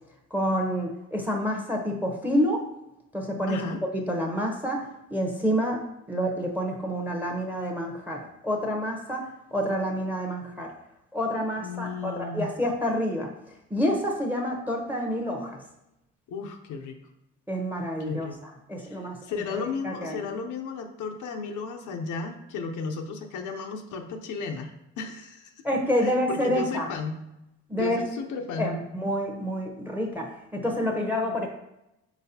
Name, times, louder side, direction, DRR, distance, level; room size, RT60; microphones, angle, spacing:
voice 1, 0.3-2.6 3.1-3.6 4.1-4.8 5.1-5.8 6.1-9.2 9.5-10.7 11.1-13.3 13.7-15.6 17.5-18.3 18.7-19.2 19.5-20.2 25.6-26.9 27.7-28.0 28.6-31.5, equal, 5° right, 1 dB, 0.8 m, -28 dB
voice 2, 3.5-3.8 11.6-12.5 16.3-17.0 18.1-18.4 18.8-25.5 26.0-27.2 27.7-28.8, left 4 dB, 75° left, 5 dB, 0.6 m, -34 dB
4.6 x 4.0 x 2.8 m, 0.87 s
cardioid pair, 90°, 30 cm